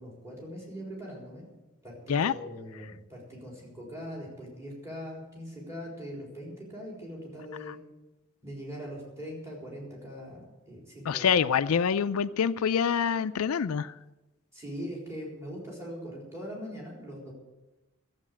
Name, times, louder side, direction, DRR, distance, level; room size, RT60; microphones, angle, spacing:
voice 1, 0.0-1.5 1.8-7.8 8.4-11.3 14.5-17.3, equal, 15° right, -3 dB, 4.1 m, -41 dB
voice 2, 11.1-13.9, left 7 dB, 85° left, 12 dB, 0.4 m, -26 dB
13.5 x 8.1 x 8.5 m, 1.0 s
head